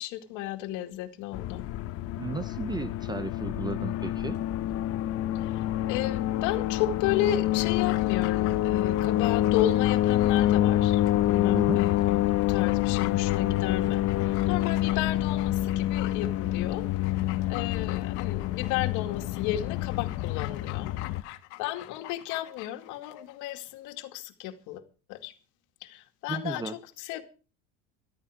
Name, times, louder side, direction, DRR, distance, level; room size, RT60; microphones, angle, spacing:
voice 1, 0.0-1.6 5.4-5.5 5.9-16.9 17.5-20.9 21.6-24.8 25.1-25.3 25.8-27.2, left 13 dB, 60° left, 2.3 m, -33 dB
sound 1, 1.3-21.2, left 14 dB, 45° left, 1.0 m, -27 dB
voice 2, 2.2-4.4 11.5-11.8 26.3-26.8, right 4 dB, 10° right, 0.6 m, -34 dB
Dog, 7.1-23.4 23.7-23.8, left 18 dB, 80° left, 1.7 m, -45 dB
14.5 x 12.5 x 5.0 m
supercardioid pair, 135°, 34 cm